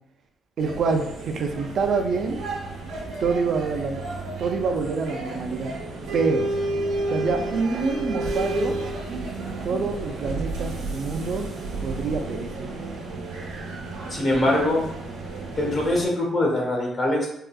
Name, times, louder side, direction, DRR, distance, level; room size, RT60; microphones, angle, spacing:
voice 1, 0.6-2.4 3.2-4.0 4.4-5.7 6.1-6.5 7.1-8.8 9.6-11.5 11.8-12.7, right 4 dB, 60° right, 4 dB, 0.4 m, -26 dB
sound 1, 0.6-16.1, right 2 dB, 85° right, 0.9 m, -31 dB
voice 2, 14.1-14.8 15.6-17.3, left 1 dB, 40° left, -1 dB, 1.1 m, -22 dB
3.7 x 2.3 x 2.2 m, 0.77 s
cardioid pair, 90°, 0 cm